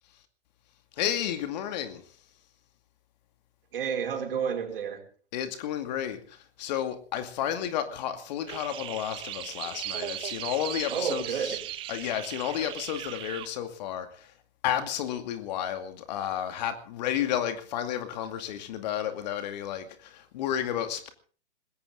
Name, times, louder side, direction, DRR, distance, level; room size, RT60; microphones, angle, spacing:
voice 1, 0.9-2.2 5.3-11.6 11.9-14.3 14.6-21.1, left 10 dB, 35° left, 2.4 m, -32 dB
voice 2, 3.7-5.0 10.9-11.6, right 7 dB, 50° right, 5.5 m, -30 dB
sound 1, 8.5-13.5, right 14 dB, 15° right, 0.8 m, -38 dB
21.0 x 17.5 x 3.8 m
figure-of-eight pair, 125°, 36 cm